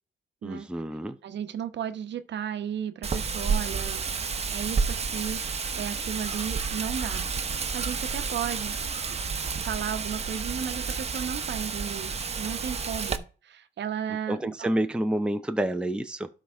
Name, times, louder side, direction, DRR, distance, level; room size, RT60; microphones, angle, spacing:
voice 1, 0.4-1.2 14.3-16.3, right 1 dB, 5° right, 0.7 m, -28 dB
voice 2, 1.2-4.0 4.5-8.8 9.1-9.2 9.6-14.8, right 9 dB, 65° right, 1.0 m, -35 dB
Wind, 3.0-13.2, right 5 dB, 30° right, 1.0 m, -30 dB
12.0 x 5.0 x 3.5 m
cardioid pair, 90°, 20 cm